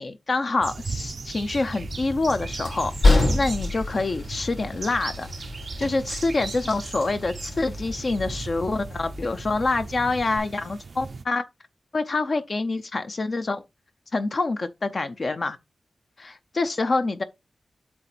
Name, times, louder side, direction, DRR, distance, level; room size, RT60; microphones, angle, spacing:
voice 1, 0.0-5.3 5.8-11.4 11.9-13.6 14.1-15.6 16.6-17.2, left 3 dB, 40° left, 0.6 m, -26 dB
sound 1, 0.6-11.2, right 4 dB, 50° right, 0.5 m, -38 dB
Train, 1.8-10.4, left 2 dB, 65° left, 3.1 m, -28 dB
7.8 x 3.3 x 6.1 m
wide cardioid pair, 160°, 0 cm